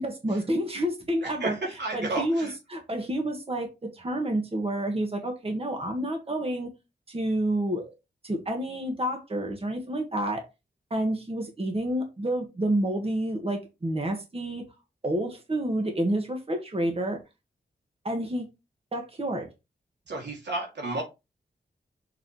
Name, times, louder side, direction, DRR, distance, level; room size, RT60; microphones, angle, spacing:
voice 1, 0.0-1.6 1.9-6.7 7.1-7.9 8.2-10.4 10.9-14.7 15.0-17.2 18.0-18.5 18.9-19.5, right 1 dB, 35° right, 1.7 m, -29 dB
voice 2, 1.2-2.5 20.1-21.0, right 2 dB, 85° right, 2.7 m, -32 dB
6.9 x 5.1 x 3.2 m
wide cardioid pair, 115°, 18 cm